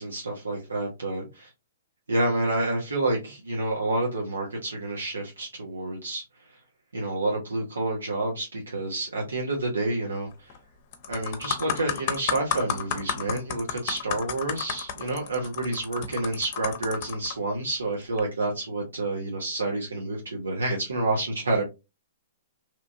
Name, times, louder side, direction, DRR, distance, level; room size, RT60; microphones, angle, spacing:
voice 1, 0.0-1.5 2.1-6.2 6.9-10.5 11.1-21.6, right 2 dB, 85° right, -1 dB, 0.9 m, -29 dB
sound 1, 10.3-10.6 10.9-17.3 18.0-18.2, left 8 dB, 45° left, 0.6 m, -32 dB
3.0 x 2.4 x 2.5 m, 0.25 s
hypercardioid pair, 125°, 0 cm